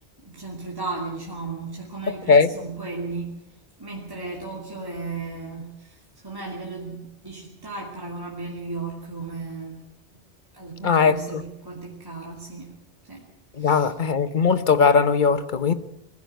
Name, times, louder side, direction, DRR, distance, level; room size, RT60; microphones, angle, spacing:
voice 1, 0.2-9.9 10.5-12.8 13.0-13.3 13.6-13.9, right 3 dB, 20° right, 2.9 m, -35 dB
voice 2, 2.1-2.5 10.8-11.2 13.6-15.7, left 5 dB, 45° left, 1.1 m, -19 dB
22.0 x 15.0 x 9.1 m
omnidirectional pair, 1.2 m